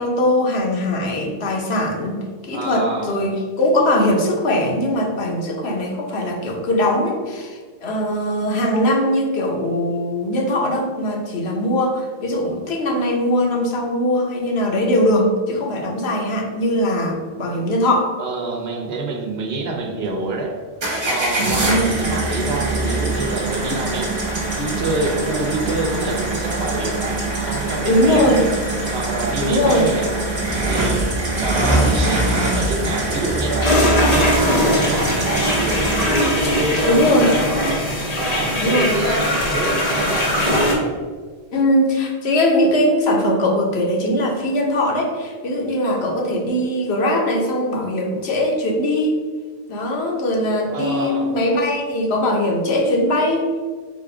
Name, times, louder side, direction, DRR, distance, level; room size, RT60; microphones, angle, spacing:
voice 1, 0.0-2.2 2.4-18.1 21.6-21.9 27.9-28.4 29.4-29.9 31.5-31.9 36.9-37.3 38.6-38.9 41.5-49.2 49.7-53.5, left 1 dB, 80° left, 0 dB, 1.1 m, -20 dB
voice 2, 2.5-3.1 18.2-20.5 21.0-24.2 24.5-27.2 27.4-28.4 28.9-30.1 30.5-31.1 31.3-33.8 34.1-37.7 38.1-40.7 50.7-51.3, right 3 dB, 75° right, 2 dB, 1.0 m, -26 dB
sound 1, 20.8-36.7, right 2 dB, 55° right, 1.3 m, -23 dB
sound 2, 33.6-40.7, left 1 dB, 40° left, 0.9 m, -20 dB
4.1 x 2.5 x 4.7 m, 1.5 s
omnidirectional pair, 1.1 m